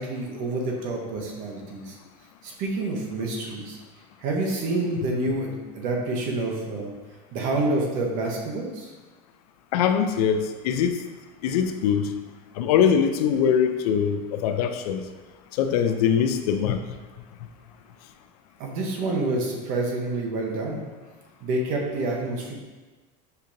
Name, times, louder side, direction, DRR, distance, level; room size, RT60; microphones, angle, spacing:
voice 1, 0.0-2.0 2.4-3.8 4.2-6.9 7.3-8.9 18.6-20.8 21.4-22.5, right 2 dB, 45° right, 0 dB, 0.8 m, -28 dB
voice 2, 9.7-11.0 11.4-12.1 12.6-15.0 15.6-16.8, left 7 dB, 80° left, 8 dB, 0.4 m, -22 dB
6.5 x 2.8 x 2.5 m, 1.3 s
supercardioid pair, 165°, 19 cm